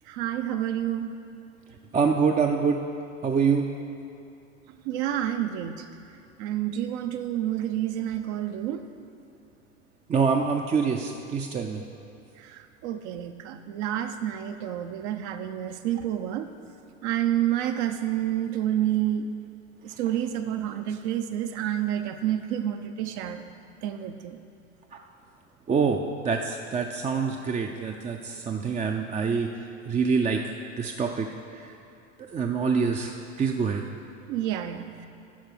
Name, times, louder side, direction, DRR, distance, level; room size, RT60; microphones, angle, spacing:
voice 1, 0.1-1.1 4.8-5.8 6.4-8.8 12.4-16.5 17.0-19.2 19.8-23.5 23.8-24.4 34.3-34.9, right 11 dB, 60° right, 8 dB, 0.8 m, -29 dB
voice 2, 1.9-2.8 3.2-3.7 10.1-11.8 24.9-25.0 25.7-29.5 29.9-31.7 32.3-33.8, right 5 dB, 20° right, 2 dB, 0.5 m, -26 dB
11.5 x 4.7 x 6.1 m, 2.7 s
hypercardioid pair, 85°, 38 cm